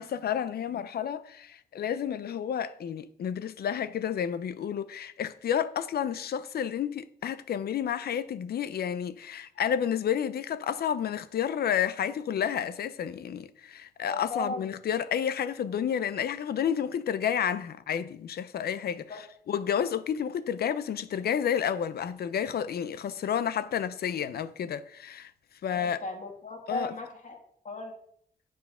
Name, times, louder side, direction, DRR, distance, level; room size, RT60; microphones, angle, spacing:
voice 1, 0.0-19.1 19.5-25.3 25.6-26.0 26.7-26.9, left 8 dB, 90° left, 0.6 m, -30 dB
voice 2, 14.0-14.7 19.1-19.2 25.7-27.4 27.6-27.9, left 2 dB, 55° left, 1.9 m, -36 dB
9.3 x 4.6 x 5.5 m
wide cardioid pair, 125°, 16 cm